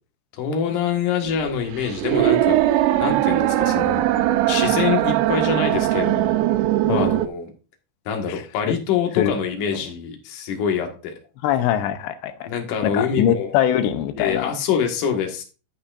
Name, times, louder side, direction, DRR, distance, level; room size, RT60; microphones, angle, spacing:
voice 1, 0.4-2.6 3.0-4.0 4.5-6.4 7.0-7.5 8.1-11.1 12.5-13.5 14.2-15.4, left 7 dB, 55° left, 2.9 m, -25 dB
sound 1, 1.3-7.3, right 14 dB, 80° right, 2.8 m, -20 dB
voice 2, 8.3-8.7 9.2-9.3 9.7-9.8 11.4-12.5 12.8-14.5, left 10 dB, 80° left, 3.0 m, -22 dB
12.5 x 8.4 x 2.6 m
omnidirectional pair, 5.1 m